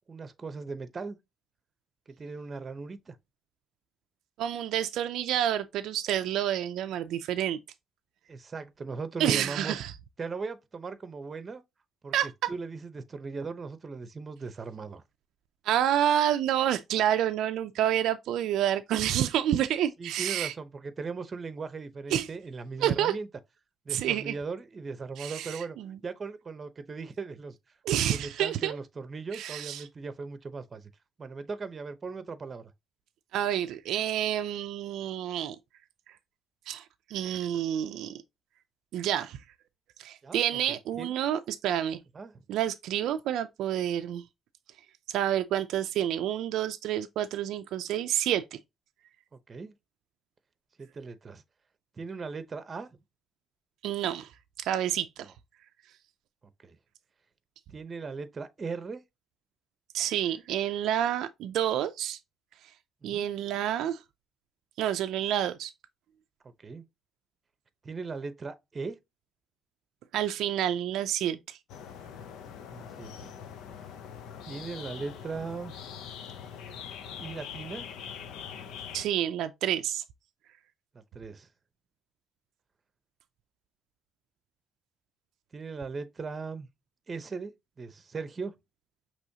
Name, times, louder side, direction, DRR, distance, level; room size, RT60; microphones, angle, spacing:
voice 1, 0.1-1.2 2.1-3.2 8.3-9.8 10.2-11.6 12.0-12.1 12.5-15.0 20.0-23.3 23.9-25.8 26.0-27.6 28.1-30.8 31.2-32.7 40.2-40.4 40.7-41.1 42.1-42.3 49.5-49.7 50.8-51.4 52.0-52.9 56.6-56.8 57.7-59.0 63.0-63.3 66.6-66.8 67.8-69.0 72.7-73.3 74.5-75.7 77.2-77.9 80.9-81.5 85.5-86.7 87.1-87.5 87.8-88.5, right 4 dB, 35° right, 0.8 m, -38 dB
voice 2, 4.4-7.6 9.2-9.9 12.1-12.5 15.6-20.5 22.1-22.3 22.8-23.1 23.9-24.4 25.2-26.0 27.8-28.8 29.3-29.9 33.3-35.6 36.7-38.2 38.9-39.4 40.0-42.0 42.5-44.2 45.1-48.6 53.8-54.3 54.6-55.3 59.9-62.2 63.0-64.0 64.8-65.7 70.1-71.6 78.9-80.0, right 11 dB, 85° right, 0.4 m, -29 dB
sound 1, 71.7-79.1, left 8 dB, 90° left, 0.6 m, -43 dB
6.1 x 3.0 x 2.8 m
cardioid pair, 90°, 0 cm